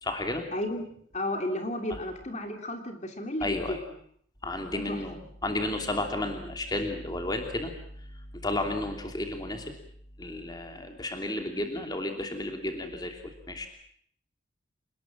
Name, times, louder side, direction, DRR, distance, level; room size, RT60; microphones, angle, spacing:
voice 1, 0.0-0.5 1.9-2.0 3.4-3.8 4.4-7.7 8.0-9.7 10.2-13.2 13.5-13.7, left 1 dB, 20° left, 4 dB, 2.9 m, -32 dB
voice 2, 0.5-0.8 1.1-3.8 4.7-5.0, left 1 dB, 35° left, 5 dB, 2.9 m, -33 dB
28.0 x 20.0 x 7.5 m, 0.65 s
head